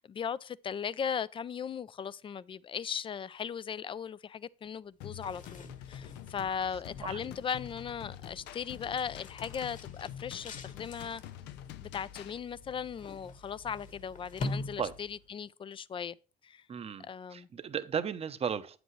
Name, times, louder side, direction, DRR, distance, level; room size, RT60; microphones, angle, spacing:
voice 1, 0.0-11.2 11.8-16.2 16.4-16.6 17.0-17.5, left 7 dB, 30° left, 0.4 m, -38 dB
sound 1, 5.0-12.4, left 11 dB, 85° left, 0.6 m, -47 dB
sound 2, 5.0-15.3, left 2 dB, 50° left, 1.5 m, -45 dB
voice 2, 7.0-7.3 14.8-14.9 16.7-18.8, right 7 dB, 35° right, 0.8 m, -35 dB
8.9 x 8.0 x 3.1 m
cardioid pair, 110°, 17 cm